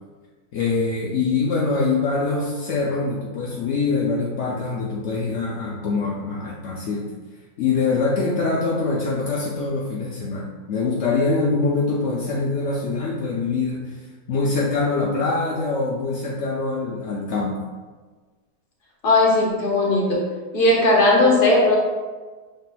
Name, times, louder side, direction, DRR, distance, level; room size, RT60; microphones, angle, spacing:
voice 1, 0.5-7.0 7.6-17.6, left 3 dB, 70° left, -4 dB, 0.6 m, -24 dB
voice 2, 19.0-20.2 20.5-21.8, left 2 dB, 45° left, -2 dB, 0.8 m, -17 dB
5.8 x 3.2 x 2.2 m, 1.4 s
omnidirectional pair, 1.7 m